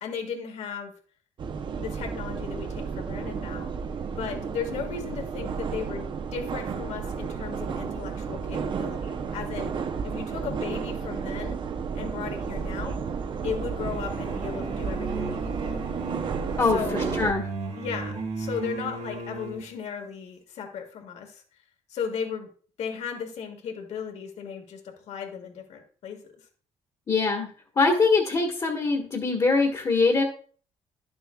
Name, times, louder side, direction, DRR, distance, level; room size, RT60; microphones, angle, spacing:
voice 1, 0.0-0.9 1.8-3.7 4.1-9.7 10.0-11.6 11.9-12.9 13.4-15.8 16.7-17.1 17.8-21.4 21.9-22.5 22.8-26.2, left 7 dB, 70° left, 3 dB, 1.8 m, -36 dB
sound 1, 1.4-17.3, right 6 dB, 45° right, 0.6 m, -32 dB
sound 2, 13.8-19.7, right 3 dB, 60° right, 1.9 m, -35 dB
voice 2, 16.6-17.4 27.1-27.5 27.8-30.2, left 4 dB, 35° left, 1 dB, 1.4 m, -23 dB
11.0 x 7.0 x 2.3 m, 0.43 s
cardioid pair, 120°, 12 cm